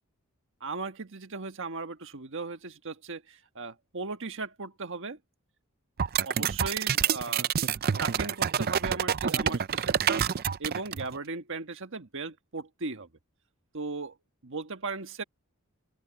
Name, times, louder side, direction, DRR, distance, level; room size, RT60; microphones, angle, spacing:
voice 1, 0.6-5.2 6.2-7.5 8.0-10.3 10.6-13.1 13.7-14.2 14.4-15.2, right 3 dB, 60° right, 1.5 m, -37 dB
sound 1, 6.0-11.2, right 8 dB, 45° right, 0.5 m, -27 dB
open air
head